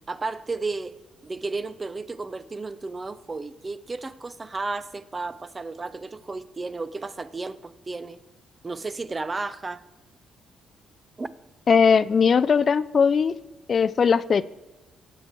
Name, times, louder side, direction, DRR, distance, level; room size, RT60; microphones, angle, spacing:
voice 1, 0.1-1.0 1.2-8.2 8.6-9.8 11.2-11.3, right 3 dB, 25° right, 15 dB, 0.6 m, -33 dB
voice 2, 11.7-13.3 13.7-14.4, left 6 dB, 45° left, 15 dB, 0.4 m, -19 dB
18.0 x 6.8 x 4.4 m, 1.1 s
cardioid pair, 90°, 0 cm